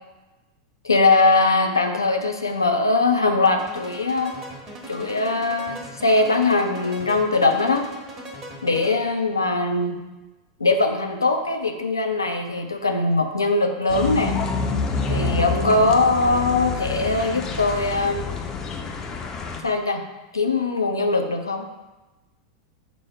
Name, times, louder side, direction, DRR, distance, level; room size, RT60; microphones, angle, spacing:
voice 1, 0.8-4.3 4.9-7.9 8.6-10.0 10.6-14.4 15.1-18.2 19.6-20.1 20.3-21.7, left 3 dB, 90° left, 4 dB, 0.4 m, -21 dB
sound 1, 3.6-9.2, right 1 dB, 35° right, 1.1 m, -39 dB
sound 2, 13.9-19.6, left 4 dB, 30° left, 0.5 m, -27 dB
4.9 x 2.1 x 4.6 m, 1.1 s
figure-of-eight pair, 90°, 2 cm